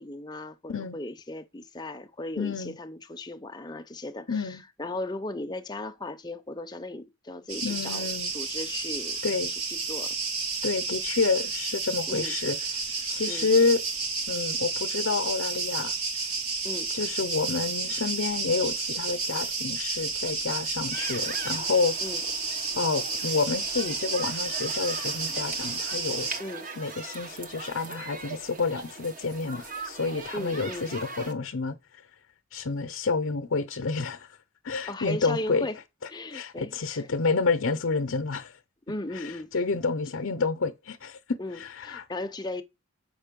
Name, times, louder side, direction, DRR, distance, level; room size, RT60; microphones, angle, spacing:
voice 1, 0.0-8.1 8.3-9.2 9.5-10.1 12.1-12.4 13.3-13.5 16.6-16.9 22.0-22.3 26.4-26.7 30.3-30.9 34.9-35.8 36.1-37.1 38.9-39.6 41.4-42.6, left 2 dB, 20° left, 0.7 m, -37 dB
voice 2, 2.4-2.8 4.3-4.6 7.6-8.3 9.2-9.5 10.6-12.6 13.1-13.8 14.3-15.9 16.9-22.0 22.7-26.3 26.8-31.8 32.5-34.3 34.6-35.7 36.3-38.6 39.2-42.0, left 4 dB, 65° left, 0.7 m, -29 dB
sound 1, 7.5-26.4, right 4 dB, 85° right, 1.6 m, -31 dB
sound 2, 20.9-31.3, right 3 dB, 40° right, 1.0 m, -41 dB
7.4 x 5.4 x 5.2 m
head